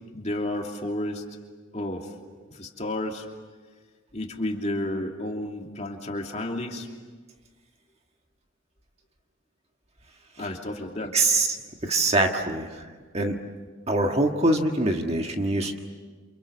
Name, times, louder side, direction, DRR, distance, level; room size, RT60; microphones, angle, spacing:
voice 1, 0.1-1.3 1.7-2.1 2.5-3.3 4.1-6.9 10.4-11.2, left 1 dB, 35° left, 2 dB, 2.9 m, -31 dB
voice 2, 11.1-11.6 11.8-13.4 13.9-15.8, right 2 dB, 30° right, 3 dB, 1.7 m, -24 dB
29.0 x 28.5 x 7.1 m, 1.5 s
head